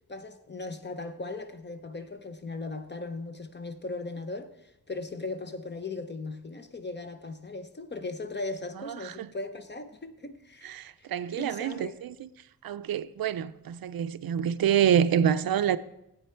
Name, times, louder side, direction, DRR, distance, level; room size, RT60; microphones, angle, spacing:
voice 1, 0.1-11.1 11.4-12.0, left 3 dB, 30° left, 0.7 m, -38 dB
voice 2, 8.9-9.3 10.6-12.3 12.6-15.8, right 9 dB, 70° right, 0.5 m, -27 dB
12.5 x 8.6 x 4.4 m
wide cardioid pair, 165°, 38 cm